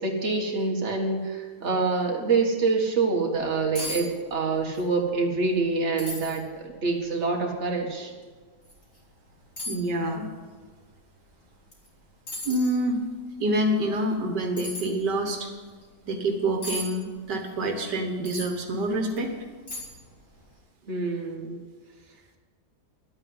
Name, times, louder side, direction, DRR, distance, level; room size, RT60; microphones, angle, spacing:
voice 1, 0.0-8.1 20.9-21.6, right 4 dB, 40° right, 0 dB, 2.1 m, -26 dB
sound 1, 3.4-3.5 3.7-4.0 4.3-4.9 5.2-5.3 6.0-6.4 7.0-7.1 8.6-8.8 9.6-9.8 11.7-11.9 12.3-12.8 14.6-14.9 16.6-16.9 18.2-18.5 19.1-19.2 19.7-20.1 20.4-20.5, left 1 dB, 30° left, 3.7 m, -35 dB
voice 2, 9.7-10.2 12.5-13.0 13.4-15.5 16.1-19.3, right 1 dB, 80° right, 3 dB, 2.0 m, -27 dB
11.5 x 8.9 x 9.5 m, 1.4 s
omnidirectional pair, 1.8 m